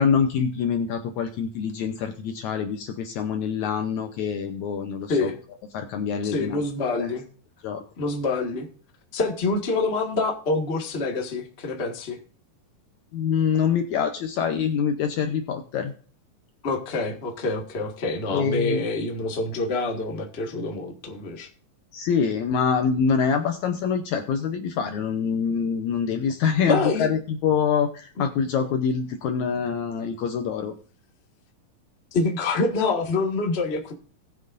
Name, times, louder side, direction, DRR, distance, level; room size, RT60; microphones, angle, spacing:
voice 1, 0.0-5.3 5.7-6.6 7.0-7.1 7.6-7.8 13.1-15.9 18.3-18.8 21.9-30.7, left 6 dB, 70° left, 6 dB, 1.9 m, -25 dB
voice 2, 6.2-7.2 8.0-8.7 9.1-12.2 16.6-21.5 26.6-27.1 32.1-33.9, left 3 dB, 30° left, 2 dB, 1.1 m, -26 dB
19.5 x 7.5 x 2.6 m, 0.42 s
omnidirectional pair, 4.0 m